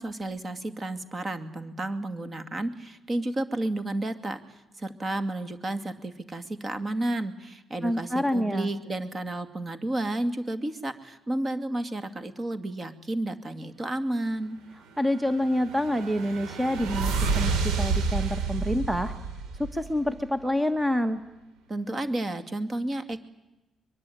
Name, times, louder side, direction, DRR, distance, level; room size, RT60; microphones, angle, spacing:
voice 1, 0.0-4.4 4.8-14.6 21.7-23.2, right 1 dB, 30° right, 9 dB, 2.4 m, -31 dB
voice 2, 7.8-8.7 15.0-19.1 19.6-21.2, equal, 10° right, 10 dB, 1.4 m, -27 dB
sound 1, 15.3-20.2, right 4 dB, 90° right, 3.3 m, -29 dB
23.5 x 22.5 x 9.4 m, 0.95 s
cardioid pair, 115°, 0 cm